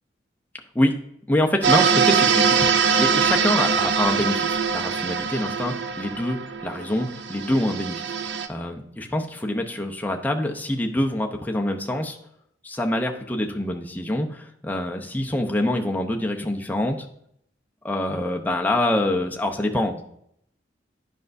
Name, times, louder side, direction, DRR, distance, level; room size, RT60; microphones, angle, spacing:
voice 1, 1.3-2.7 3.0-12.2 12.6-17.1 17.8-20.0, left 1 dB, 10° left, 2 dB, 0.6 m, -25 dB
sound 1, 1.6-8.5, right 6 dB, 60° right, 0.5 m, -22 dB
10.0 x 5.3 x 2.6 m, 0.71 s
head